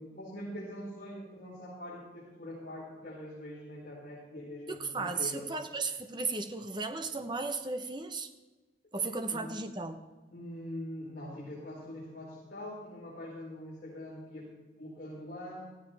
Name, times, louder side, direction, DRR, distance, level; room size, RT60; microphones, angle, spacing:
voice 1, 0.0-5.5 9.0-9.5 10.3-14.5 14.8-15.6, left 1 dB, 45° left, -10 dB, 5.1 m, -43 dB
voice 2, 4.7-8.3 8.9-10.0, right 3 dB, 25° right, 7 dB, 0.9 m, -35 dB
17.0 x 15.5 x 3.5 m, 1.2 s
head